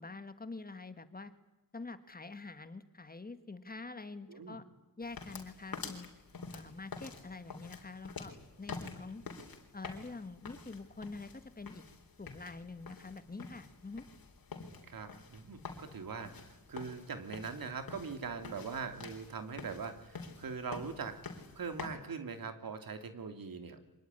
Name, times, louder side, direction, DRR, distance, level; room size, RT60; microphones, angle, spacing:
voice 1, 0.0-1.3 1.7-4.6 5.0-6.1 6.5-8.3 8.6-9.2 9.7-11.8 12.2-14.1, left 3 dB, 25° left, 11 dB, 1.4 m, -46 dB
voice 2, 4.3-4.6 14.8-21.2 21.5-23.9, right 5 dB, 85° right, 8 dB, 2.8 m, -42 dB
sound 1, 5.0-21.9, left 4 dB, 90° left, 3.8 m, -48 dB
25.0 x 20.0 x 9.9 m, 1.1 s
wide cardioid pair, 165°, 34 cm